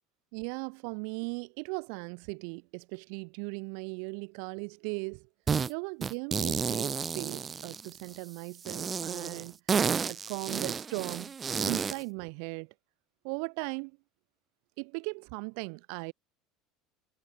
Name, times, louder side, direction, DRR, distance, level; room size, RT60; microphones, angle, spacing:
voice 1, 0.3-5.3 5.7-9.6 10.1-11.3 11.6-12.7 13.2-13.9 14.8-16.1, right 40 dB or more, 65° right, 0.6 m, -38 dB
sound 1, 5.5-5.7 6.0-8.1 8.6-12.0, right 6 dB, 20° right, 0.4 m, -31 dB
cardioid pair, 165°, 0 cm